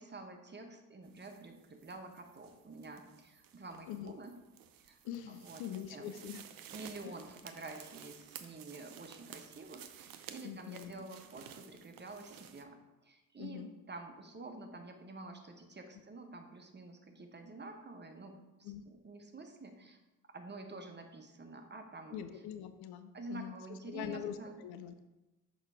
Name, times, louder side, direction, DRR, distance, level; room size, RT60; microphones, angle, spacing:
voice 1, 0.0-4.4 4.8-5.0 5.3-6.1 6.7-20.0 20.3-22.4 23.1-24.6, right 3 dB, 25° right, 4 dB, 1.1 m, -49 dB
sound 1, 1.0-12.6, right 9 dB, 55° right, 0.7 m, -54 dB
voice 2, 5.0-6.4 7.0-7.1 10.4-10.9 13.4-13.7 18.6-18.8 22.1-25.1, left 9 dB, 65° left, 10 dB, 0.6 m, -44 dB
6.2 x 5.2 x 3.6 m, 1.0 s
hypercardioid pair, 40°, 42 cm